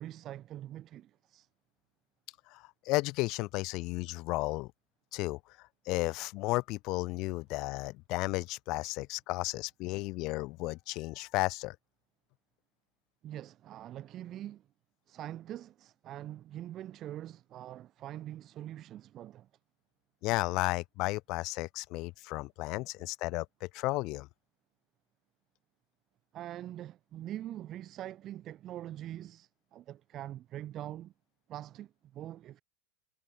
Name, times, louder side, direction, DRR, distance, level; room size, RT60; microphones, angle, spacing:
voice 1, 0.0-1.5 13.2-14.7 15.1-19.5 26.3-31.1 31.5-32.6, right 12 dB, 40° right, 1.9 m, -43 dB
voice 2, 2.5-4.7 5.1-5.4 5.9-11.8 20.2-24.3, left 22 dB, 50° left, 0.6 m, -33 dB
hypercardioid pair, 95°, 0 cm